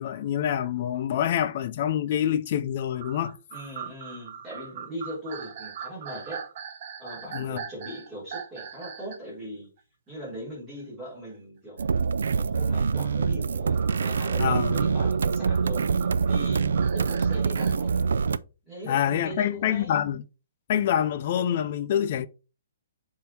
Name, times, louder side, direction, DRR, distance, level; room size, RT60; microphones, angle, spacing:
voice 1, 0.0-3.4 7.3-7.6 14.4-14.8 18.8-20.2 20.7-22.3, left 10 dB, 35° left, 0.5 m, -26 dB
sound 1, 3.0-9.3 9.8-9.9 11.3-11.4 13.7-17.7, right 8 dB, 35° right, 0.8 m, -41 dB
voice 2, 3.5-6.4 7.0-9.7 10.1-11.8 12.4-18.0 18.7-20.0, equal, 5° right, 3.7 m, -40 dB
sound 2, 11.8-18.4, right 5 dB, 90° right, 0.4 m, -25 dB
7.5 x 3.7 x 4.2 m
hypercardioid pair, 175°, 0 cm